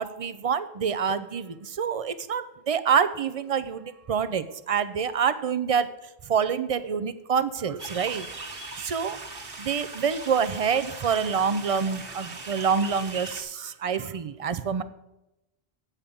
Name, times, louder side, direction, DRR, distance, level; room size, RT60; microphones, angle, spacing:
voice 1, 0.0-5.9 6.3-8.3 8.8-9.2 9.6-14.8, right 6 dB, 45° right, 13 dB, 0.5 m, -27 dB
sound 1, 7.8-13.4, right 3 dB, 60° right, 1.4 m, -39 dB
8.4 x 5.8 x 6.7 m, 0.92 s
omnidirectional pair, 1.1 m